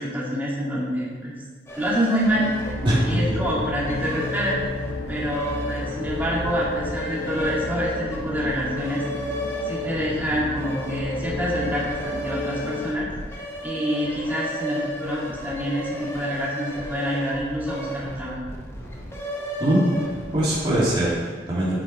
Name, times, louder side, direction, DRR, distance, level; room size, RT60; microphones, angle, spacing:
voice 1, 0.0-1.3 1.8-2.7 3.0-4.6 5.1-9.0 9.6-18.4, equal, 10° right, -7 dB, 2.2 m, -26 dB
sound 1, 1.7-21.1, equal, 15° left, 1.1 m, -35 dB
sound 2, 2.3-13.0, left 3 dB, 65° left, 1.1 m, -33 dB
voice 2, 2.8-3.2 19.6-19.9 20.3-21.8, right 1 dB, 30° right, -9 dB, 1.9 m, -22 dB
9.2 x 5.5 x 4.3 m, 1.5 s
head